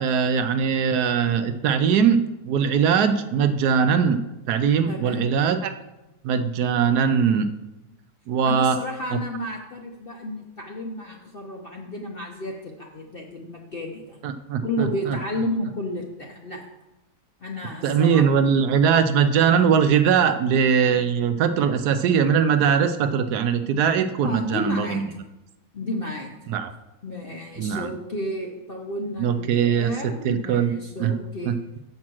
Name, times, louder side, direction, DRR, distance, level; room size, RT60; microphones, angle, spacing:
voice 1, 0.0-4.2 4.5-5.7 6.2-7.5 8.3-8.8 9.1-9.2 14.2-15.2 17.8-25.0 26.5-26.7 27.6-27.9 29.2-29.9 30.2-30.7 31.0-31.1 31.5-31.6, right 7 dB, 75° right, 9 dB, 1.0 m, -21 dB
voice 2, 4.9-5.3 8.4-14.2 14.6-16.7 17.4-18.3 24.2-25.0 25.7-26.4 27.0-31.6, left 1 dB, 50° left, 1 dB, 0.7 m, -32 dB
7.4 x 5.3 x 6.1 m, 0.99 s
omnidirectional pair, 1.9 m